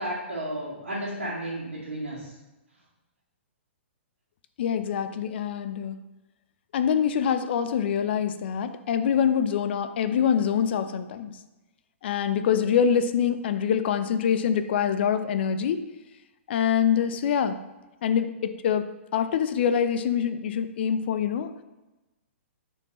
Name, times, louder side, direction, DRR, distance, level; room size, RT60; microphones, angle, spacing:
voice 1, 0.0-2.3, right 1 dB, 90° right, -9 dB, 1.9 m, -33 dB
voice 2, 4.6-6.0 6.7-11.3 12.0-15.9 16.5-17.6 18.0-21.5, left 8 dB, 55° left, 11 dB, 0.5 m, -25 dB
8.7 x 4.6 x 3.0 m, 1.1 s
figure-of-eight pair, 120°, 7 cm